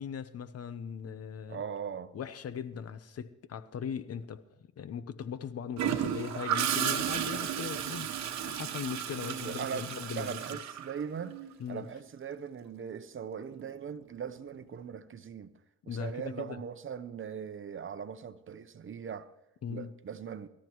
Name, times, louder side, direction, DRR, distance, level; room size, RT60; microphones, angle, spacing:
voice 1, 0.0-1.6 2.1-4.4 4.8-8.1 8.4-10.6 11.6-11.8 15.9-16.6 19.6-19.9, left 7 dB, 55° left, 0.9 m, -39 dB
voice 2, 1.5-2.1 9.2-11.4 11.7-15.5 15.8-19.3 19.7-20.5, right 7 dB, 40° right, 0.9 m, -40 dB
Gurgling / Toilet flush, 5.8-11.5 13.5-13.8, right 9 dB, 65° right, 1.2 m, -33 dB
23.5 x 13.0 x 3.1 m
cardioid pair, 90°, 30 cm